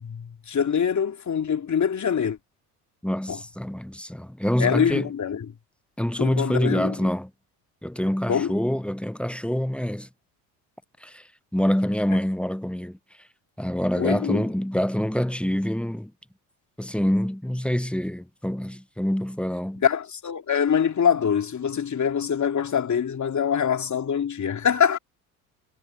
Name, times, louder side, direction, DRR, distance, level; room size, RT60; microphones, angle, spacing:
voice 1, 0.0-2.4 3.3-3.4 4.6-5.4 6.2-7.0 8.3-8.5 14.0-14.4 19.8-25.0, left 7 dB, 35° left, 2.9 m, -24 dB
voice 2, 3.0-5.1 6.0-7.3 7.8-10.1 11.0-11.2 11.5-13.0 13.6-16.1 16.8-19.8, equal, ahead, 1.1 m, -26 dB
hypercardioid pair, 60°, 47 cm